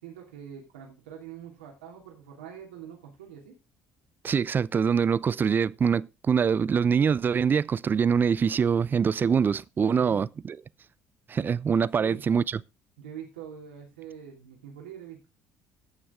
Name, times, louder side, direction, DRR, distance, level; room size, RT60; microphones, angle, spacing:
voice 1, 0.0-3.5 10.0-10.2 12.0-12.2 13.0-15.3, right 8 dB, 85° right, 2.9 m, -44 dB
voice 2, 4.2-10.6 11.3-12.6, right 6 dB, 35° right, 0.6 m, -24 dB
16.5 x 6.3 x 3.8 m
hypercardioid pair, 55°, 6 cm